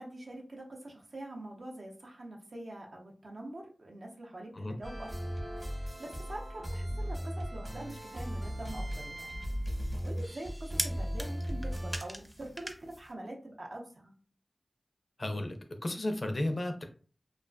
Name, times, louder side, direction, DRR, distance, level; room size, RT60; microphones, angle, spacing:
voice 1, 0.0-5.3 5.6-9.5 10.0-14.1, right 1 dB, 75° right, -1 dB, 0.6 m, -45 dB
sound 1, 4.8-12.0, equal, 40° right, 0.9 m, -37 dB
sound 2, 7.8-13.1, equal, 5° right, 0.4 m, -43 dB
voice 2, 15.2-15.6 15.8-16.8, left 1 dB, 50° left, 6 dB, 0.4 m, -33 dB
2.4 x 2.3 x 2.2 m, 0.39 s
wide cardioid pair, 45°, 0 cm